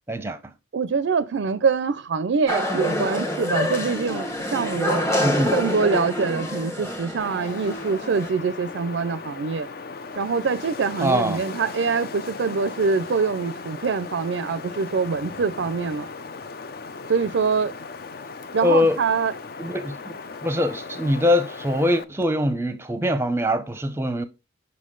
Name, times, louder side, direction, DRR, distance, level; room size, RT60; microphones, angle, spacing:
voice 1, 0.1-0.4 5.2-5.6 11.0-11.4 18.6-19.0 19.6-20.2 20.4-24.2, left 1 dB, 10° right, 0.6 m, -23 dB
voice 2, 0.7-5.1 5.5-9.7 10.2-16.1 17.1-17.7 18.5-19.3, right 5 dB, 65° right, 0.4 m, -24 dB
sound 1, 2.5-8.3, left 1 dB, 15° left, 1.0 m, -27 dB
Wind, 7.2-22.0, left 4 dB, 50° left, 0.5 m, -37 dB
6.4 x 5.7 x 3.8 m
head